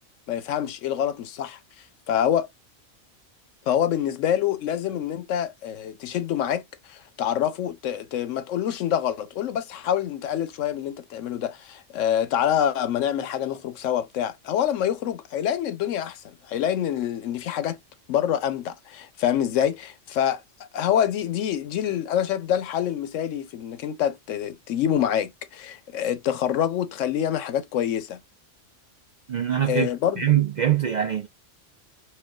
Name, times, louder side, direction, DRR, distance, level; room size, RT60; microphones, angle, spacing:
voice 1, 0.3-1.6 2.1-2.5 3.7-6.6 6.9-17.8 18.1-20.4 20.7-28.2 29.7-30.2, left 10 dB, 90° left, 1.0 m, -26 dB
voice 2, 29.3-29.9 30.2-31.3, right 10 dB, 60° right, 0.4 m, -23 dB
4.5 x 2.2 x 2.3 m
omnidirectional pair, 1.3 m